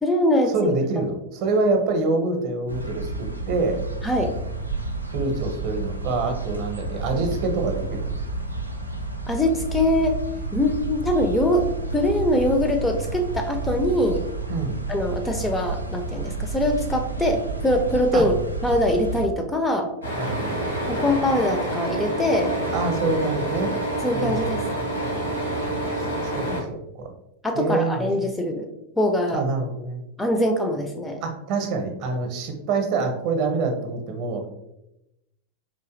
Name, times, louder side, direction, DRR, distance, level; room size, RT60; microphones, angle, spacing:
voice 1, 0.0-0.7 4.0-4.4 7.1-7.2 9.3-10.2 10.5-11.7 11.9-14.2 14.9-18.3 18.6-19.9 20.9-22.5 24.0-24.6 26.5-26.6 27.4-28.7 29.0-29.4 30.2-31.2, left 1 dB, 10° left, 4 dB, 0.3 m, -23 dB
voice 2, 0.5-3.8 5.1-8.2 14.5-14.8 18.1-18.2 20.1-20.7 22.7-23.7 24.1-24.7 25.8-26.6 27.0-27.1 27.6-28.3 29.3-30.0 31.2-34.5, right 3 dB, 45° right, 4 dB, 0.6 m, -26 dB
sound 1, 2.7-19.3, right 3 dB, 85° right, 0.3 m, -30 dB
sound 2, 20.0-26.6, right 1 dB, 80° left, 1.0 m, -27 dB
3.9 x 2.6 x 2.4 m, 0.87 s
figure-of-eight pair, 90°, 0 cm